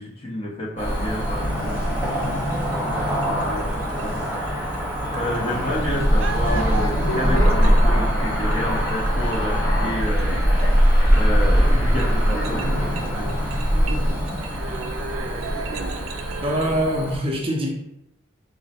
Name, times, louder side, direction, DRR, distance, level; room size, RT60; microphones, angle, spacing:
voice 1, 0.0-4.8 5.1-10.4 11.1-13.4, left 1 dB, 30° left, -2 dB, 0.7 m, -30 dB
Cricket / Motor vehicle (road), 0.8-17.2, equal, 10° right, 0.9 m, -22 dB
sound 1, 1.7-16.7, right 4 dB, 80° right, 0.4 m, -37 dB
sound 2, 6.5-12.7 13.6-14.8, left 1 dB, 85° left, 0.6 m, -36 dB
voice 2, 16.4-17.7, equal, 25° right, 0 dB, 0.5 m, -23 dB
3.7 x 2.1 x 4.1 m, 0.82 s
head